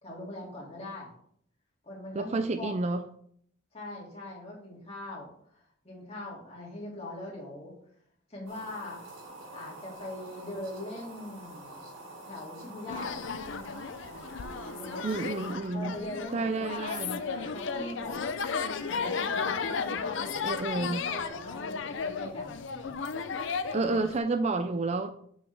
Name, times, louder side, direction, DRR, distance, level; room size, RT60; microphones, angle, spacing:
voice 1, 0.0-1.1 1.8-2.7 3.7-7.8 8.3-9.1 9.5-11.8 12.2-13.4 14.5-15.1 15.7-18.3 18.8-23.0 23.9-24.0, left 1 dB, 30° left, 2.5 m, -42 dB
voice 2, 2.1-3.0 15.0-16.0 16.3-17.2 20.4-21.0 23.7-25.1, right 3 dB, 30° right, 0.3 m, -30 dB
sound 1, 8.5-15.5, right 2 dB, 80° right, 2.4 m, -47 dB
sound 2, 12.9-24.2, left 5 dB, 60° left, 0.4 m, -34 dB
sound 3, 14.4-22.1, right 2 dB, 65° right, 0.9 m, -48 dB
6.9 x 6.4 x 3.4 m
head